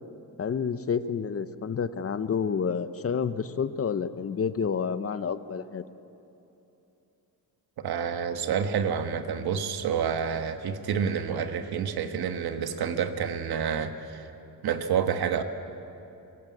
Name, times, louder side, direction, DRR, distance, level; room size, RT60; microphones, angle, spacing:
voice 1, 0.4-5.8, left 6 dB, 40° left, 12 dB, 0.8 m, -29 dB
voice 2, 7.8-14.3 14.6-15.4, right 7 dB, 80° right, 8 dB, 1.3 m, -28 dB
21.5 x 16.5 x 8.5 m, 2.8 s
cardioid pair, 100°, 37 cm